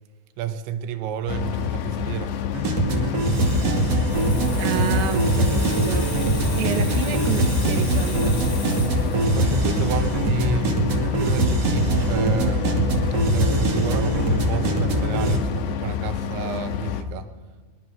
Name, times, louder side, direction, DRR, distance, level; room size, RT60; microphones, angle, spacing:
voice 1, 0.4-2.3 9.3-12.8 13.3-17.3, right 9 dB, 85° right, 9 dB, 3.4 m, -32 dB
sound 1, 1.3-17.0, left 9 dB, 80° left, 3.4 m, -28 dB
sound 2, 2.5-15.4, right 2 dB, 40° right, 2.9 m, -22 dB
Water tap faucet / Sink (filling or washing), 2.9-12.3 12.5-12.8, left 3 dB, 40° left, 4.8 m, -39 dB
voice 2, 4.6-6.1 6.5-8.4, right 8 dB, 65° right, 6 dB, 2.9 m, -29 dB
24.0 x 21.5 x 5.8 m, 1.4 s
omnidirectional pair, 5.1 m